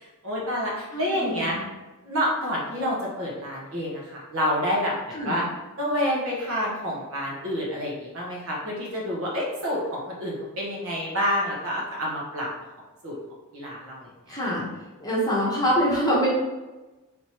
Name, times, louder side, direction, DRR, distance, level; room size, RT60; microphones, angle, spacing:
voice 1, 0.2-1.6 2.0-5.4 5.8-12.5 13.0-13.2 13.5-14.4, equal, 65° right, -4 dB, 1.0 m, -28 dB
voice 2, 0.9-1.5 5.1-5.4 14.3-14.7 15.0-16.3, equal, 20° left, -7 dB, 0.9 m, -25 dB
3.5 x 2.9 x 2.9 m, 1.1 s
head